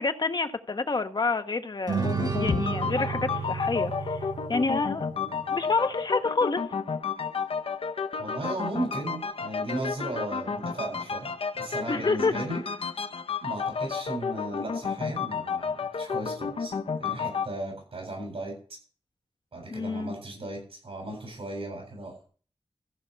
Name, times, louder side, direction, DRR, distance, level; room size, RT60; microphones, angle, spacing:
voice 1, 0.0-4.2 4.5-6.6 11.9-12.3 19.7-20.1, left 3 dB, 50° left, 7 dB, 1.2 m, -28 dB
sound 1, 1.9-17.5, left 5 dB, 80° left, 0.8 m, -32 dB
sound 2, 1.9-5.5, right 5 dB, 45° right, 3.9 m, -32 dB
voice 2, 8.2-11.3 11.6-12.6 13.4-16.7 17.0-18.8 19.5-22.3, right 2 dB, 85° right, 0 dB, 8.0 m, -36 dB
14.5 x 5.6 x 8.2 m, 0.42 s
wide cardioid pair, 95°, 10 cm